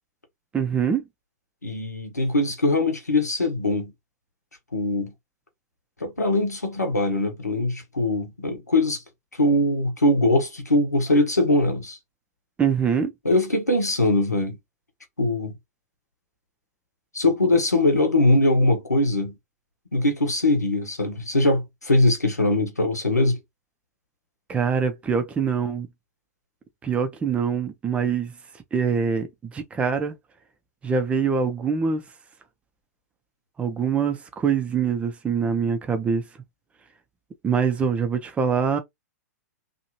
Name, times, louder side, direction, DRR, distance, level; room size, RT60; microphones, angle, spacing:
voice 1, 0.5-1.0 12.6-13.1 24.5-25.9 26.8-28.3 28.7-30.1 30.8-32.0 33.6-36.2 37.4-38.8, right 6 dB, 15° right, 0.5 m, -24 dB
voice 2, 1.6-3.9 4.7-5.1 6.0-9.0 9.4-12.0 13.2-14.6 15.2-15.6 17.1-19.4 19.9-23.4, left 2 dB, 85° left, 1.0 m, -22 dB
2.8 x 2.5 x 2.8 m
figure-of-eight pair, 105°, 9 cm